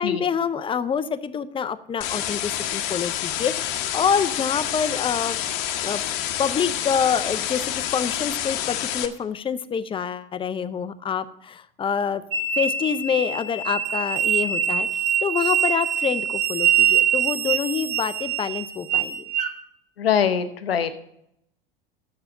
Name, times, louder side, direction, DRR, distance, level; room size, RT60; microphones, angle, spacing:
voice 1, 0.0-5.4 5.8-6.0 6.4-7.6 7.9-12.2 12.5-19.3, left 7 dB, 20° left, 13 dB, 0.5 m, -26 dB
sound 1, 2.0-9.1, left 11 dB, 55° left, 0.9 m, -28 dB
sound 2, 12.3-19.5, right 8 dB, 50° right, 1.0 m, -23 dB
voice 2, 20.0-20.9, left 8 dB, 90° left, 11 dB, 0.7 m, -22 dB
6.8 x 6.6 x 7.2 m, 0.77 s
hypercardioid pair, 80°, 29 cm